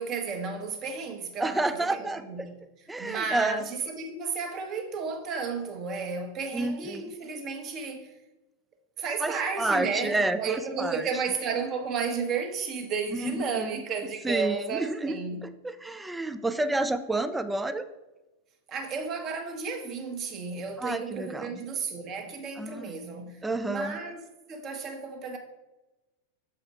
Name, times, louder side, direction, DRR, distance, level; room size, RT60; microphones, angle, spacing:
voice 1, 0.0-2.6 3.0-8.1 9.0-15.4 18.7-23.4 23.7-24.2 24.5-25.4, right 5 dB, 35° right, 1.2 m, -33 dB
voice 2, 1.4-2.2 2.9-3.6 6.5-7.0 9.2-11.0 13.1-13.7 14.2-17.8 20.8-21.5 22.6-22.9 23.4-24.0, right 2 dB, 10° right, 0.4 m, -30 dB
7.2 x 4.9 x 4.5 m
figure-of-eight pair, 90°, 0 cm